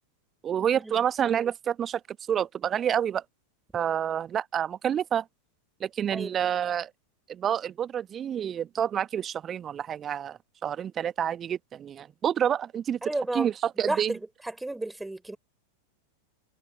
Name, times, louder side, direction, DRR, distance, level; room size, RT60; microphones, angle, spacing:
voice 1, 0.4-2.0 2.3-3.2 3.7-5.3 5.8-6.9 7.3-13.0 13.3-14.1, right 9 dB, 25° right, 1.3 m, -28 dB
voice 2, 6.1-6.4 13.0-13.5 13.8-15.4, right 2 dB, 5° right, 5.6 m, -32 dB
figure-of-eight pair, 90°, 0 cm